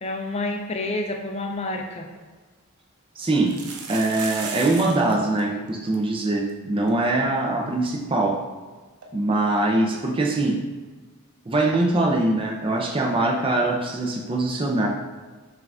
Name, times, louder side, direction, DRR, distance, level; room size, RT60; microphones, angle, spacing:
voice 1, 0.0-2.1, left 2 dB, 30° left, 3 dB, 0.5 m, -29 dB
sound 1, 2.2-2.3 3.4-5.1 5.4-5.5 5.7-6.0 6.5-6.6 6.9-7.0 9.0-9.1, right 5 dB, 80° right, 0.6 m, -35 dB
voice 2, 3.2-3.6 3.9-8.4 9.1-10.6 11.5-14.9, right 2 dB, 25° right, 0 dB, 0.5 m, -22 dB
5.6 x 2.5 x 3.5 m, 1.4 s
head